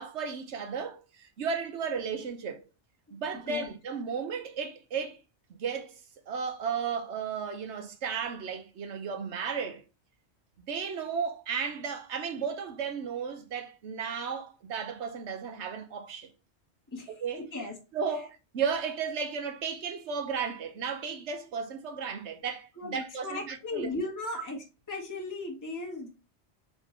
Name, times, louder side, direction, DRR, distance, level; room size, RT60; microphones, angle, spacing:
voice 1, 0.0-2.6 3.1-5.2 5.6-6.0 6.3-9.8 10.7-16.3 17.1-17.5 17.9-23.9, right 6 dB, 80° right, 1.1 m, -34 dB
voice 2, 16.9-17.8 22.8-24.6 24.9-26.1, left 2 dB, 20° left, 1.0 m, -36 dB
4.0 x 3.6 x 3.0 m
omnidirectional pair, 1.1 m